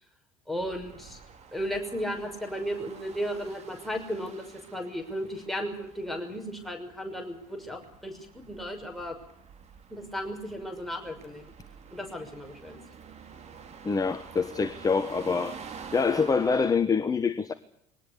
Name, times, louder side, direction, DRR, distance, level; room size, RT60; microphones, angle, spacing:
voice 1, 0.5-1.2 1.5-9.2 9.9-11.5 11.9-12.8, equal, ahead, 2 dB, 6.1 m, -35 dB
sound 1, 0.6-16.7, right 6 dB, 35° right, 4.0 m, -48 dB
voice 2, 13.8-15.6 15.9-17.5, left 5 dB, 20° left, 13 dB, 1.3 m, -25 dB
22.5 x 18.5 x 8.5 m, 0.70 s
figure-of-eight pair, 60°, 18 cm